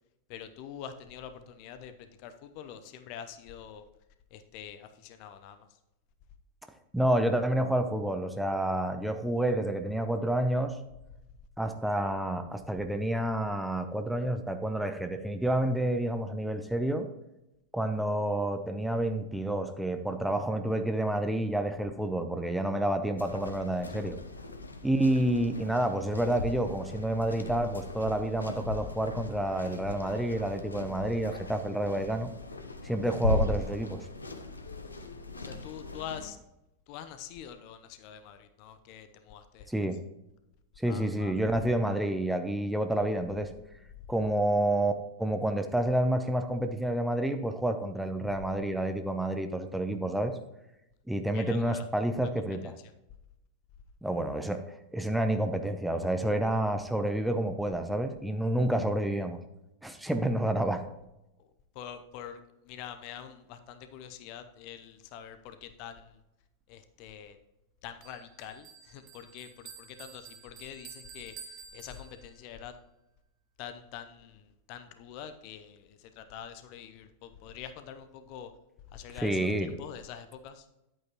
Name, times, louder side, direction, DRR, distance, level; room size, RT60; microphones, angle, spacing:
voice 1, 0.3-3.8 4.3-5.7 35.4-36.4 36.9-39.7 40.9-41.3 51.3-51.8 52.6-52.7 61.7-62.4 62.6-66.2 66.7-67.4 67.8-72.7 73.6-78.5 78.9-79.4 79.7-80.7, left 9 dB, 45° left, 10 dB, 0.8 m, -45 dB
voice 2, 6.9-10.8 11.6-17.1 17.7-24.2 24.8-32.3 32.8-34.0 39.7-40.0 40.8-43.5 44.1-44.9 45.2-50.3 51.1-52.7 54.0-54.6 54.9-59.4 59.8-60.8 79.1-79.7, right 1 dB, 5° right, 7 dB, 0.8 m, -29 dB
sound 1, 23.2-36.3, left 3 dB, 75° left, 0.8 m, -38 dB
Bell, 68.0-72.5, right 6 dB, 35° right, 1.3 m, -50 dB
10.5 x 8.8 x 3.0 m, 0.89 s
figure-of-eight pair, 90°, 0 cm